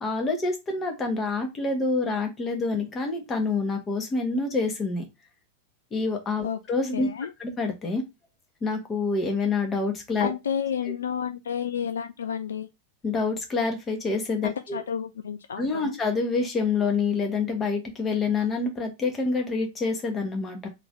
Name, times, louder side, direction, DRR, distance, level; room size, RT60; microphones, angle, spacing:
voice 1, 0.0-5.1 5.9-7.1 7.4-8.0 8.6-10.3 13.0-14.8 15.6-20.7, left 4 dB, 20° left, 1.3 m, -27 dB
voice 2, 6.9-7.3 10.2-12.7 14.4-16.0, left 8 dB, 65° left, 0.3 m, -31 dB
3.8 x 3.0 x 3.7 m
figure-of-eight pair, 90°, 0 cm